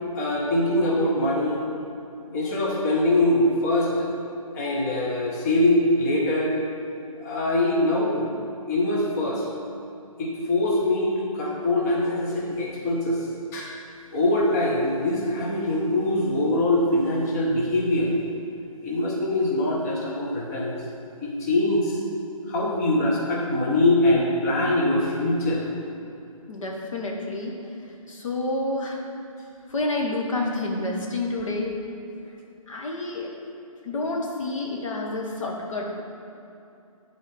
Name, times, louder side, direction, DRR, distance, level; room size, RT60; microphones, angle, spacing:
voice 1, 0.1-1.6 2.3-4.1 4.5-6.5 7.2-8.3 8.6-9.5 10.2-13.2 13.5-13.7 14.1-18.1 18.8-20.8 21.2-22.0 22.5-25.6, left 1 dB, 30° left, -3 dB, 1.1 m, -23 dB
voice 2, 26.5-29.0 29.7-31.7 32.7-33.3 33.8-36.0, left 2 dB, 60° left, -1 dB, 1.1 m, -29 dB
8.4 x 4.1 x 4.9 m, 2.7 s
figure-of-eight pair, 145°, 19 cm